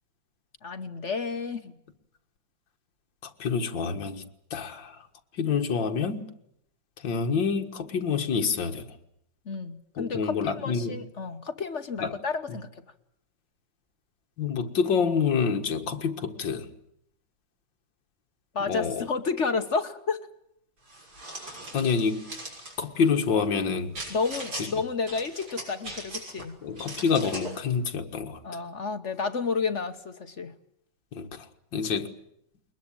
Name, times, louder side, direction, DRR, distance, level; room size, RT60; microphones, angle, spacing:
voice 1, 0.6-1.8 9.5-12.7 18.5-20.2 23.6-23.7 24.1-26.6 28.4-30.5, left 4 dB, 45° left, 1.3 m, -31 dB
voice 2, 3.2-4.2 4.5-5.0 5.3-6.2 7.0-9.0 10.0-11.0 12.0-12.1 12.5-12.6 14.4-16.7 18.7-19.1 21.7-22.3 22.8-23.9 24.6-24.7 26.6-28.4 31.1-31.5 31.7-32.1, left 5 dB, 70° left, 2.3 m, -27 dB
sound 1, 20.9-22.8 23.9-24.7 25.1-26.4 26.8-27.6, right 1 dB, 50° right, 6.8 m, -39 dB
21.5 x 21.0 x 8.9 m
omnidirectional pair, 2.1 m